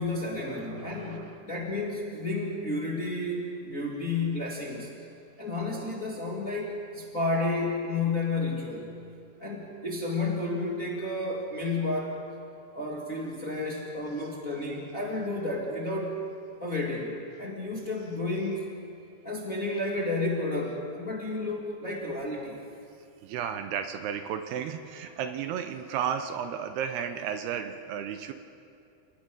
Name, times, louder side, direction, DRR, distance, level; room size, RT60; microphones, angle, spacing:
voice 1, 0.0-4.9 5.4-8.9 9.4-12.2 12.7-16.1 16.6-18.7 19.2-22.6, left 2 dB, 30° left, -3 dB, 1.7 m, -31 dB
voice 2, 0.5-1.4 23.2-28.3, right 8 dB, 80° right, 8 dB, 2.6 m, -33 dB
29.0 x 19.0 x 5.2 m, 2.5 s
omnidirectional pair, 5.1 m